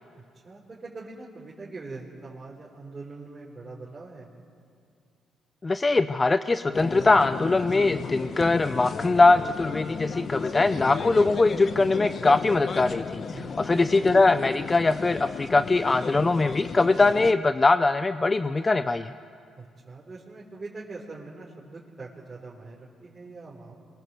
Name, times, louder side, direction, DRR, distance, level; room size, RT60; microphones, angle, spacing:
voice 1, 0.1-4.4 13.3-13.6 19.6-23.7, right 3 dB, 30° right, -5 dB, 4.3 m, -42 dB
voice 2, 5.6-19.1, left 3 dB, 25° left, 11 dB, 0.6 m, -22 dB
sound 1, 6.7-17.3, left 5 dB, 50° left, 1.1 m, -34 dB
26.5 x 23.0 x 7.8 m, 2.3 s
cardioid pair, 90°, 0 cm